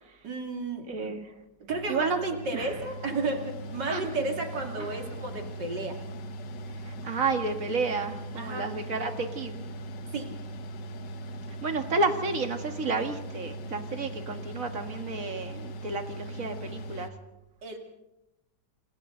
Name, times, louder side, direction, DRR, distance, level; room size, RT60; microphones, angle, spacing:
voice 1, 0.2-0.9 1.6-6.0 7.0-7.1 8.4-8.7 10.1-10.3 17.6-17.8, right 3 dB, 70° right, 2 dB, 3.2 m, -33 dB
voice 2, 0.9-1.3 1.9-2.2 2.5-2.7 3.9-4.0 6.9-9.6 11.6-17.1, right 3 dB, 45° right, 5 dB, 2.2 m, -31 dB
Mechanical fan, 1.7-17.1, right 1 dB, 70° left, 1.7 m, -40 dB
28.5 x 26.0 x 3.9 m, 0.94 s
omnidirectional pair, 2.0 m